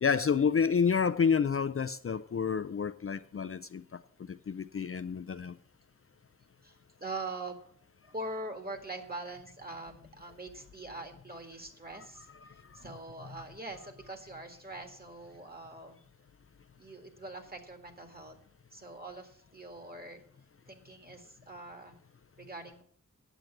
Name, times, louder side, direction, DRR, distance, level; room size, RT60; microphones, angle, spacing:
voice 1, 0.0-3.8 4.5-5.5, left 6 dB, 45° left, 11 dB, 0.4 m, -29 dB
voice 2, 6.6-7.6 8.0-16.0 16.8-18.4 18.7-20.2 20.7-22.0 22.4-22.8, right 2 dB, 30° right, 5 dB, 1.8 m, -43 dB
9.1 x 7.9 x 7.2 m, 0.63 s
wide cardioid pair, 85°, 31 cm